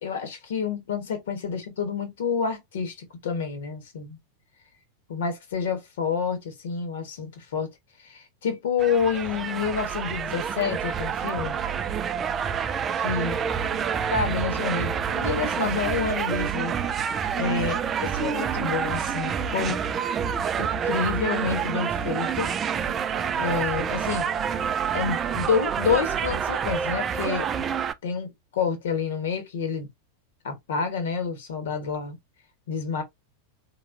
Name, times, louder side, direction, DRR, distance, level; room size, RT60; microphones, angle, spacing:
voice 1, 0.0-4.2 5.1-7.7 8.0-11.6 13.0-13.3 14.1-19.8 20.6-22.5 23.4-24.3 24.9-27.5 28.0-29.9 30.4-32.2 32.7-33.0, left 6 dB, 60° left, 1.2 m, -28 dB
sound 1, 8.8-27.9, right 7 dB, 25° right, 0.4 m, -28 dB
3.8 x 3.0 x 2.5 m
figure-of-eight pair, 90°, 0 cm